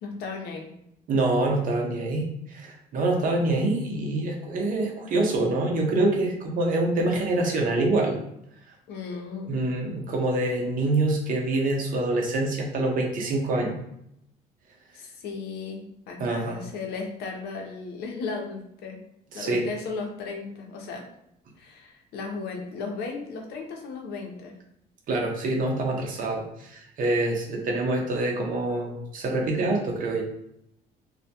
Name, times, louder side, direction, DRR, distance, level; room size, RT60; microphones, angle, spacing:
voice 1, 0.0-0.7 8.9-9.5 14.9-19.0 19.3-21.0 21.6-24.6, left 4 dB, 70° left, 1 dB, 0.6 m, -35 dB
voice 2, 1.1-8.2 9.5-13.8 16.2-16.6 19.3-19.7 25.1-30.2, right 2 dB, 55° right, 0 dB, 0.7 m, -25 dB
2.2 x 2.1 x 2.7 m, 0.77 s
cardioid pair, 110°, 17 cm